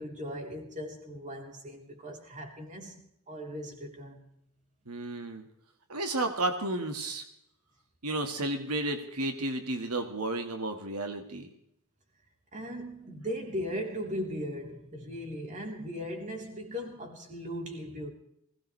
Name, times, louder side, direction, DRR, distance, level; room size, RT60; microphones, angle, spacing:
voice 1, 0.0-3.0 3.3-4.2 12.5-18.1, equal, 35° right, 3.5 m, -38 dB
voice 2, 4.9-5.5 5.9-7.2 8.0-11.5, right 2 dB, 90° right, 1.7 m, -32 dB
20.5 x 17.5 x 3.2 m
head